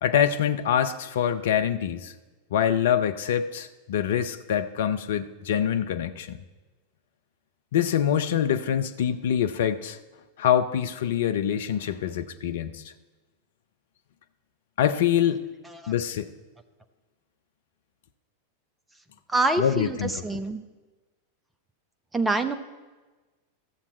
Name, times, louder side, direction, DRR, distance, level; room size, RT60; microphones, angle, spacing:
voice 1, 0.0-2.1 2.5-6.4 7.7-10.0 10.4-12.8 14.8-15.5 15.9-16.3 19.6-20.1, left 9 dB, 60° left, 9 dB, 0.6 m, -25 dB
voice 2, 19.3-20.0 20.2-20.6 22.1-22.6, right 2 dB, 10° right, 8 dB, 0.7 m, -25 dB
13.5 x 7.1 x 4.4 m, 1.2 s
figure-of-eight pair, 90°, 0 cm